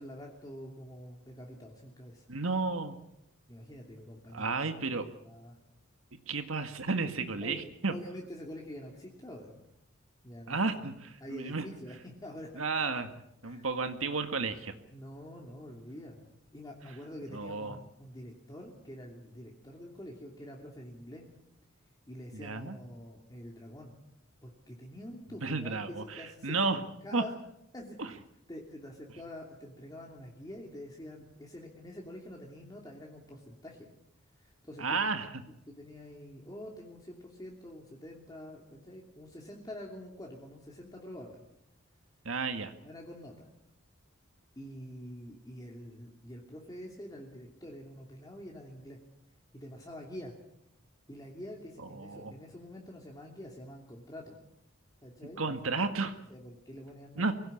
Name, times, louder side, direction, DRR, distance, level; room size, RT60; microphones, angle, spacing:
voice 1, 0.0-2.3 3.5-4.6 4.9-5.6 7.4-7.6 7.9-9.6 10.2-10.6 11.2-12.5 13.4-13.7 14.9-21.2 22.1-24.0 24.4-27.3 27.7-28.1 28.5-33.9 34.4-35.0 35.7-41.4 42.8-43.5 44.6-49.0 49.5-50.3 51.1-54.4 55.0-55.5 56.3-57.3, equal, 20° left, -1 dB, 3.0 m, -46 dB
voice 2, 2.3-3.0 4.3-5.1 6.3-7.9 10.5-11.7 12.6-13.1 13.4-14.7 17.3-17.8 22.3-22.8 25.4-26.8 27.1-27.2 28.0-28.1 34.8-35.3 42.3-42.7 51.8-52.3 55.4-56.2 57.2-57.3, right 4 dB, 75° right, 7 dB, 1.8 m, -32 dB
23.5 x 17.5 x 8.6 m, 0.81 s
head